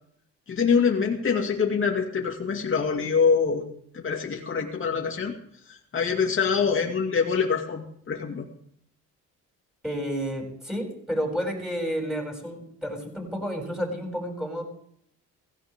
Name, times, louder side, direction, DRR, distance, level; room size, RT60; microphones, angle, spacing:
voice 1, 0.5-3.7 3.9-5.3 5.7-8.5, left 6 dB, 45° left, 1 dB, 2.5 m, -25 dB
voice 2, 9.8-14.6, equal, ahead, 1 dB, 7.5 m, -31 dB
16.5 x 16.5 x 3.7 m, 0.69 s
cardioid pair, 90°, 30 cm